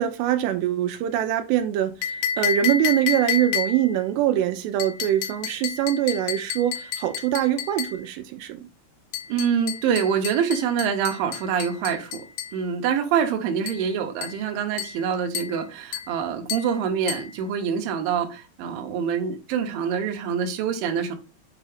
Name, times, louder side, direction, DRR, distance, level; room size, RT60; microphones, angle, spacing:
voice 1, 0.0-8.7, right 11 dB, 85° right, 2.8 m, -24 dB
sound 1, 2.0-4.0 4.8-8.0 9.1-12.6 13.7-13.9 14.2-14.5 14.8-15.1 15.3-15.6 15.9-16.2 16.5-16.7 17.1-17.3, left 8 dB, 85° left, 1.9 m, -30 dB
voice 2, 9.3-12.2 12.5-21.2, right 7 dB, 70° right, 2.4 m, -25 dB
7.9 x 2.7 x 4.9 m
omnidirectional pair, 4.8 m